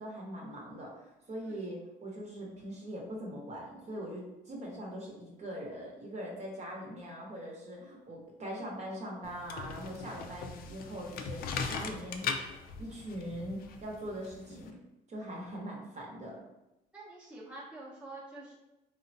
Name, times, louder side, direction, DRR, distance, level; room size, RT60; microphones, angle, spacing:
voice 1, 0.0-12.3 12.8-14.8 15.1-16.4, equal, 40° right, -2 dB, 0.9 m, -42 dB
sound 1, 9.2-14.7, left 5 dB, 60° left, 0.4 m, -39 dB
voice 2, 16.9-18.5, right 2 dB, 5° right, -7 dB, 0.7 m, -47 dB
3.6 x 2.1 x 2.7 m, 0.95 s
cardioid pair, 110°, 17 cm